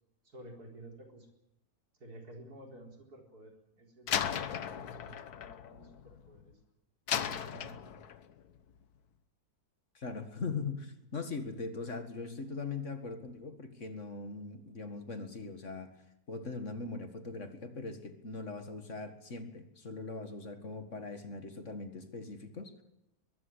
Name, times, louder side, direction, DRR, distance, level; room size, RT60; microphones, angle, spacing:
voice 1, 0.2-1.3 2.0-6.6 7.2-7.9, right 1 dB, 80° right, 2 dB, 4.7 m, -52 dB
Slam, 4.1-6.5 7.1-8.3, left 9 dB, 90° left, 1.6 m, -36 dB
voice 2, 9.9-15.9 16.3-22.8, left 4 dB, 50° left, 8 dB, 2.2 m, -41 dB
22.5 x 14.5 x 9.8 m, 0.88 s
omnidirectional pair, 1.6 m